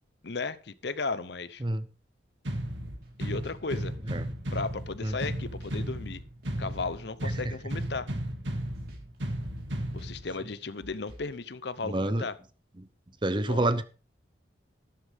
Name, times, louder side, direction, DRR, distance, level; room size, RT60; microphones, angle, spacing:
voice 1, 0.2-1.6 3.2-3.9 4.5-6.2 6.6-8.1 9.9-12.4 13.5-13.7, left 4 dB, 65° left, 0.8 m, -35 dB
sound 1, 2.5-10.5, right 1 dB, 80° right, 2.4 m, -35 dB
sound 2, 2.9-3.1 3.4-3.6 4.5-4.8 5.1-5.4 5.6-5.7 6.4-7.0 7.2-7.5 7.8-7.9 8.6-9.2 9.4-9.7 10.0-10.1 10.8-11.3, right 1 dB, 50° right, 4.0 m, -50 dB
voice 2, 11.8-12.2 12.8-12.9 13.2-13.8, right 1 dB, 25° right, 0.8 m, -28 dB
12.5 x 11.5 x 3.6 m
head